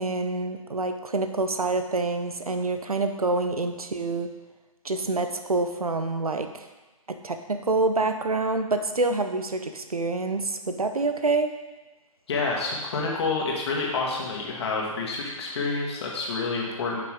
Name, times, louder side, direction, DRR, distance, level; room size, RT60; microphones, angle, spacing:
voice 1, 0.0-4.3 4.8-6.5 7.2-11.5, right 3 dB, 80° right, 7 dB, 0.8 m, -26 dB
voice 2, 12.3-17.0, left 3 dB, 45° left, -2 dB, 2.1 m, -28 dB
9.0 x 5.9 x 3.7 m, 1.1 s
figure-of-eight pair, 130°, 19 cm